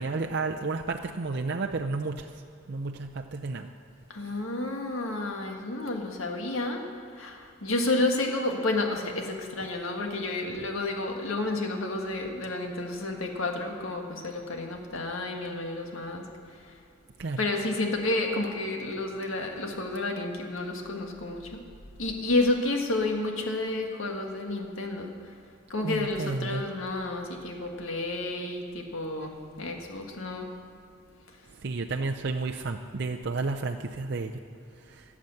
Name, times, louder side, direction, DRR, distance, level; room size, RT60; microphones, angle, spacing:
voice 1, 0.0-2.3 2.7-3.7 17.2-17.4 25.8-26.6 31.6-34.4 34.9-35.0, right 3 dB, 55° right, 3 dB, 0.6 m, -31 dB
voice 2, 4.1-6.8 7.2-16.3 17.4-21.6 22.0-25.1 25.7-30.5, left 2 dB, 85° left, 2 dB, 1.9 m, -30 dB
17.5 x 7.3 x 7.8 m, 2.5 s
head